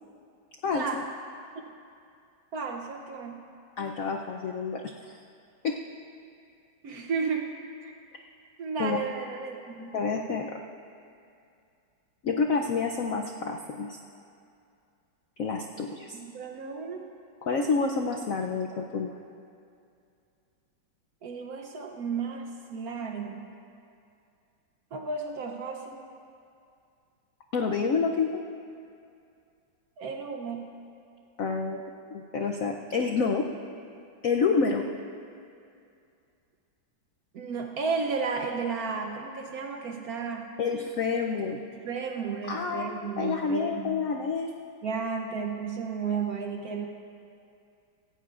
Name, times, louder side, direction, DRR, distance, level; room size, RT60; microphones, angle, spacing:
voice 1, 0.6-1.0 3.8-5.2 5.6-5.8 8.8-9.0 9.9-10.6 12.2-14.0 15.4-16.2 17.4-19.2 27.5-28.4 31.4-31.8 32.1-33.5 34.2-34.9 40.6-41.6 42.5-44.6, left 5 dB, 75° left, 2 dB, 0.7 m, -28 dB
voice 2, 2.5-3.4 6.8-7.5 7.8-7.9 8.6-10.0 16.1-17.0 21.2-23.5 24.9-26.0 30.0-30.7 37.3-40.5 41.7-44.0 44.8-46.9, right 5 dB, 60° right, 3 dB, 1.0 m, -33 dB
16.5 x 16.5 x 2.4 m, 2.5 s
omnidirectional pair, 2.1 m